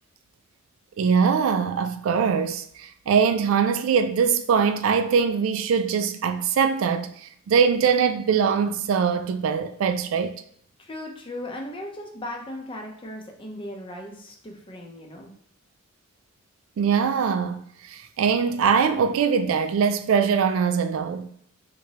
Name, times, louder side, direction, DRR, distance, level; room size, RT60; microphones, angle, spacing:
voice 1, 1.0-7.1 7.5-10.4 16.8-17.6 17.9-21.3, right 6 dB, 80° right, 0.3 m, -22 dB
voice 2, 10.8-15.3, left 1 dB, 25° left, 0.6 m, -37 dB
3.5 x 3.0 x 2.8 m
head